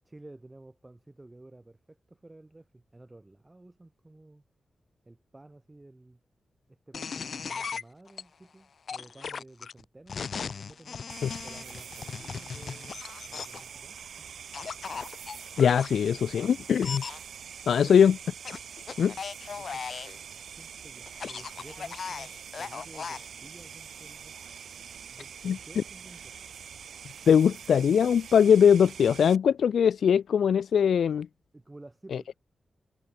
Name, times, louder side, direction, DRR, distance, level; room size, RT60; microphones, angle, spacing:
voice 1, 0.0-4.4 5.1-6.2 6.7-10.2 10.5-13.0 13.3-14.1 19.5-19.9 20.6-22.3 22.6-24.3 25.1-26.4 31.5-32.3, right 2 dB, 20° right, 7.6 m, -52 dB
sound 1, 6.9-8.2 8.9-13.7 14.5-15.9 16.8-17.2 18.5-20.2 21.1-23.3, left 6 dB, 60° left, 3.8 m, -37 dB
sound 2, 11.1-29.4, right 7 dB, 85° right, 2.0 m, -45 dB
voice 2, 15.6-17.0 17.7-18.2 19.0-19.1 25.4-25.8 27.3-31.3, left 7 dB, 85° left, 0.3 m, -21 dB
wide cardioid pair, 110°, 0 cm